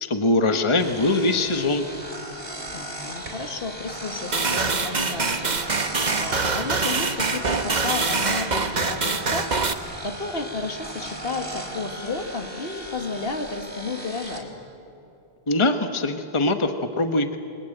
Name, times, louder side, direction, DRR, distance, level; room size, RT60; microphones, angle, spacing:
voice 1, 0.0-1.8 15.5-17.4, left 2 dB, 30° left, 7 dB, 1.3 m, -22 dB
sound 1, 0.8-14.4, right 1 dB, 60° right, 4.2 m, -37 dB
voice 2, 2.7-5.6 6.2-9.5 9.8-14.5, left 3 dB, 65° left, 5 dB, 2.3 m, -32 dB
sound 2, 4.3-9.7, right 4 dB, 45° right, 1.3 m, -24 dB
29.0 x 22.5 x 9.0 m, 2.9 s
omnidirectional pair, 1.1 m